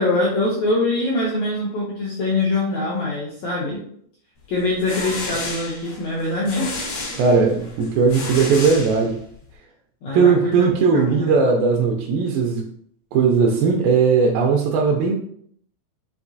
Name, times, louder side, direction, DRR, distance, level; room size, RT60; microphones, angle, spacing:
voice 1, 0.0-3.8 4.5-6.7 10.0-11.3, left 2 dB, 90° left, -5 dB, 1.6 m, -23 dB
sound 1, 4.6-9.5, left 3 dB, 70° left, 1.3 m, -32 dB
voice 2, 7.2-9.2 10.1-12.7 13.1-15.1, right 5 dB, 80° right, 1 dB, 2.2 m, -18 dB
5.9 x 2.7 x 2.6 m, 0.65 s
omnidirectional pair, 4.3 m